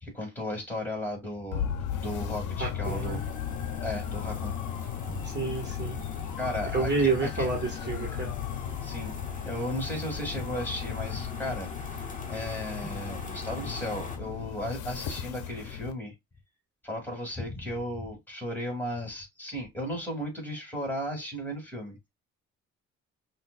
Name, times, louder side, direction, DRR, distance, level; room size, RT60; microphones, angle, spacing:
voice 1, 0.0-3.2 3.8-4.5 5.1-5.3 6.4-8.1 8.8-9.1 9.4-12.0 12.3-16.1 16.8-22.1, left 1 dB, 5° left, 2.7 m, -35 dB
sound 1, 1.5-15.9, left 9 dB, 80° left, 0.7 m, -36 dB
voice 2, 2.6-3.2 5.2-6.0 6.7-8.3, right 4 dB, 35° right, 1.7 m, -29 dB
sound 2, 2.8-14.2, left 3 dB, 25° left, 1.4 m, -42 dB
5.6 x 2.8 x 2.3 m
cardioid pair, 90°, 30 cm